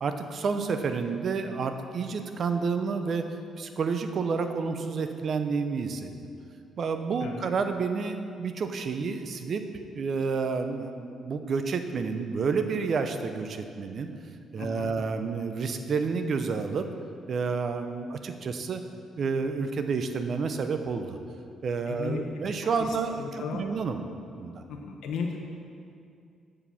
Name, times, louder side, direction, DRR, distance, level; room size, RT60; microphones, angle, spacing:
voice 1, 0.0-3.3 3.6-6.1 6.8-14.1 14.5-16.9 17.3-18.8 19.2-21.2 21.6-24.0 24.4-24.6, right 5 dB, 55° right, 7 dB, 0.6 m, -30 dB
voice 2, 14.6-14.9 21.9-22.2 22.9-23.6 24.7-25.4, left 5 dB, 80° left, 1 dB, 0.8 m, -35 dB
7.5 x 4.9 x 6.8 m, 2.4 s
cardioid pair, 90°, 0 cm